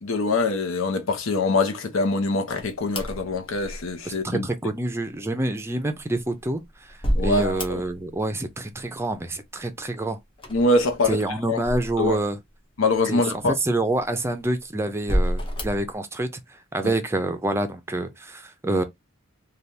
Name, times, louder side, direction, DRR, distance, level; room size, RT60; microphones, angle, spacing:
voice 1, 0.0-4.4 7.1-7.8 10.5-11.2 11.5-11.6 12.0-12.2 12.8-13.5 16.8-16.9, left 2 dB, 85° left, 0.8 m, -24 dB
sound 1, 2.5-4.1 6.0-8.2 8.5-9.2 10.3-12.5 13.0-13.1 14.0-14.5 15.0-15.9, equal, 25° left, 0.8 m, -30 dB
voice 2, 4.1-10.2 11.1-12.4 13.1-16.3 16.7-18.8, right 2 dB, 15° right, 0.5 m, -27 dB
3.3 x 2.3 x 2.7 m
head